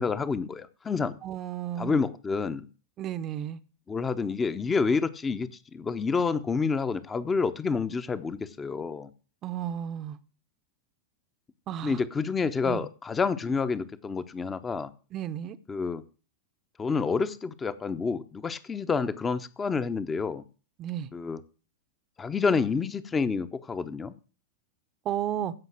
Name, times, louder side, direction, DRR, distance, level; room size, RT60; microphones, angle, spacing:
voice 1, 0.0-1.2 1.8-2.6 3.9-9.1 11.8-14.9 15.7-16.0 16.8-20.4 21.1-21.4 22.2-24.1, left 5 dB, 15° left, 14 dB, 0.9 m, -28 dB
voice 2, 1.2-2.0 3.0-3.6 9.4-10.2 11.7-12.0 12.6-12.9 15.1-15.6 20.8-21.1 25.0-25.5, right 10 dB, 30° right, 12 dB, 0.9 m, -33 dB
15.5 x 5.7 x 7.5 m, 0.37 s
figure-of-eight pair, 90°, 0 cm